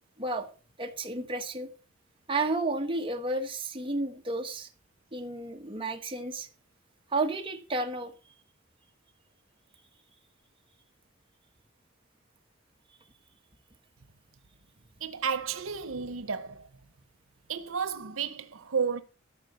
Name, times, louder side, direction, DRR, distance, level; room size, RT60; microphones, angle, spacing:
voice 1, 0.8-1.7 2.3-4.7 5.1-6.5 7.1-8.1, right 2 dB, 25° right, 1.6 m, -32 dB
voice 2, 15.0-16.7 17.5-19.0, right 6 dB, 85° right, 0.9 m, -32 dB
13.5 x 5.6 x 6.9 m
head